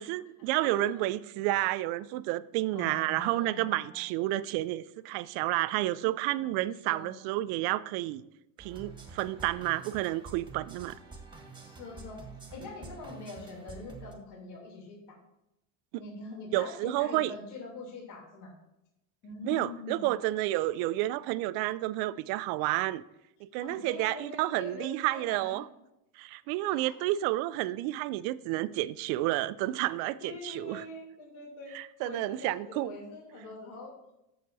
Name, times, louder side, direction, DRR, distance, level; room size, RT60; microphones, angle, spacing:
voice 1, 0.0-8.2 8.6-11.0 16.5-17.3 19.4-23.0 23.4-25.7 26.2-30.8 31.7-33.0, right 16 dB, 60° right, 16 dB, 0.5 m, -30 dB
voice 2, 0.6-1.0 2.7-4.0 6.3-7.2 11.7-12.2 12.5-15.0 16.0-18.5 19.2-20.1 23.6-25.6 26.7-26.9 30.2-31.8 32.0-33.9, left 3 dB, 60° left, -1 dB, 3.1 m, -44 dB
sound 1, 8.6-14.1, right 4 dB, 10° right, 1.3 m, -47 dB
14.0 x 5.8 x 2.7 m, 0.89 s
supercardioid pair, 125°, 45 cm